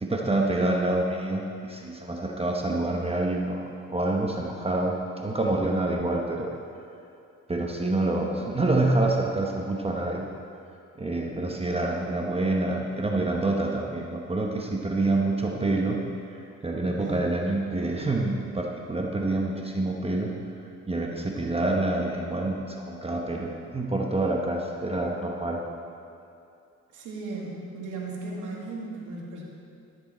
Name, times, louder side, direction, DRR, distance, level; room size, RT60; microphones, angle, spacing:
voice 1, 0.0-6.5 7.5-10.3 11.0-16.0 16.6-20.4 20.9-25.6, right 2 dB, 20° right, 0 dB, 1.0 m, -27 dB
voice 2, 17.0-17.3 26.9-29.4, right 3 dB, 80° right, -3 dB, 2.2 m, -36 dB
13.5 x 7.6 x 4.3 m, 2.6 s
cardioid pair, 90°, 30 cm